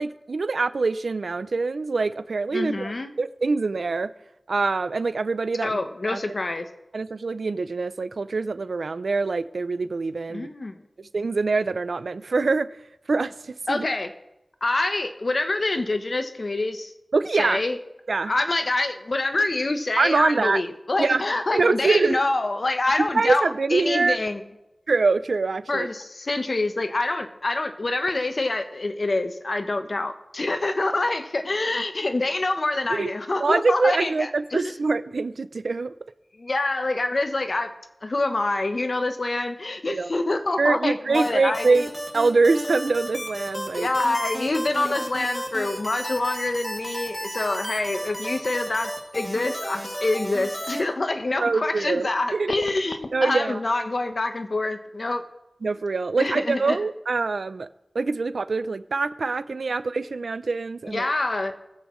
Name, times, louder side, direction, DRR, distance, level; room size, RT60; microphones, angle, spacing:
voice 1, 0.0-2.9 3.2-4.1 4.5-5.8 6.1-6.2 6.9-10.5 11.1-12.7 13.1-13.3 13.7-13.9 17.1-17.6 18.1-18.3 20.0-20.6 21.0-21.2 21.5-22.2 23.1-24.2 24.9-25.9 32.9-33.1 33.4-35.9 39.9-40.1 40.6-41.9 42.1-43.9 51.4-52.5 53.1-53.6 55.6-57.7 57.9-61.1, right 3 dB, 85° right, 15 dB, 0.4 m, -24 dB
voice 2, 2.5-3.1 5.6-6.7 10.3-10.8 13.7-14.1 14.6-16.9 17.4-17.8 18.2-24.4 25.7-34.7 36.4-37.7 38.0-41.8 43.7-55.2 56.2-56.8 60.9-61.5, left 2 dB, 60° left, 8 dB, 0.9 m, -26 dB
sound 1, 41.1-50.8, equal, 15° left, 2.6 m, -33 dB
21.0 x 8.2 x 3.1 m, 0.96 s
wide cardioid pair, 50°, 0 cm